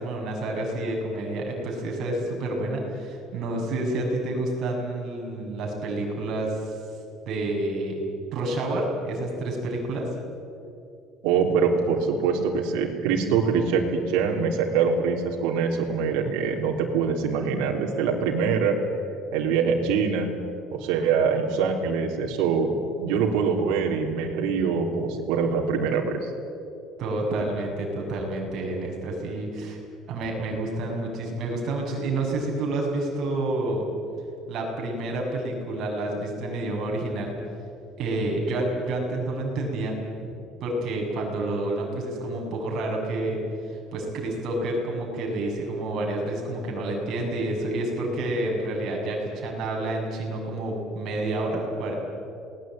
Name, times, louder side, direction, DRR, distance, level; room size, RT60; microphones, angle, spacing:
voice 1, 0.0-6.8 7.3-8.0 8.3-10.1 27.0-29.8 30.1-33.9 34.5-37.3 38.0-40.0 40.6-51.9, right 2 dB, 45° right, 0 dB, 7.2 m, -29 dB
voice 2, 11.2-18.8 19.3-20.3 20.7-22.7 23.0-26.3, right 6 dB, 90° right, 0 dB, 3.6 m, -24 dB
28.0 x 20.0 x 9.2 m, 2.6 s
cardioid pair, 170°, 0 cm